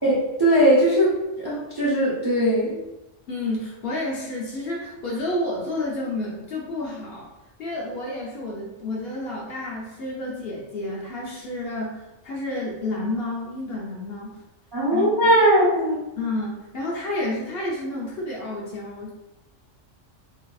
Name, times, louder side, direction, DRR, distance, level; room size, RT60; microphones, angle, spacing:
voice 1, 0.4-2.8 14.7-16.0, right 1 dB, 40° right, -8 dB, 0.3 m, -19 dB
voice 2, 3.3-7.3 7.6-14.3 14.9-15.3 16.2-19.1, left 2 dB, 65° left, -3 dB, 0.7 m, -30 dB
2.6 x 2.4 x 2.3 m, 0.97 s
omnidirectional pair, 1.3 m